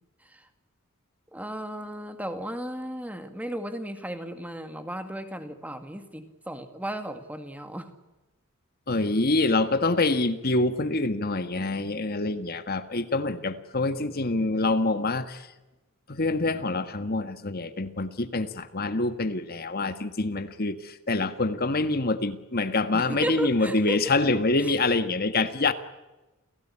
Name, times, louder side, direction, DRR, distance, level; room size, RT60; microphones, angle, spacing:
voice 1, 1.3-7.9 22.9-24.1 24.6-24.7, equal, 5° right, 8 dB, 2.2 m, -35 dB
voice 2, 8.9-15.5 16.1-25.7, left 2 dB, 45° left, 10 dB, 1.6 m, -26 dB
30.0 x 17.5 x 9.9 m, 1.1 s
head